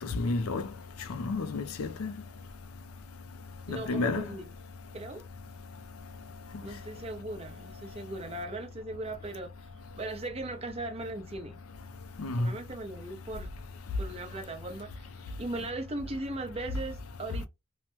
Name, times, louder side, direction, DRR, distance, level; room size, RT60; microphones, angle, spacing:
voice 1, 0.2-0.6 1.2-2.1 3.9-4.2 12.2-12.5, left 3 dB, 85° left, 0.5 m, -30 dB
voice 2, 3.7-4.5 4.9-5.2 6.6-9.5 10.0-11.6 12.3-13.5 14.0-17.5, right 2 dB, 30° right, 0.6 m, -38 dB
3.1 x 2.1 x 3.0 m
head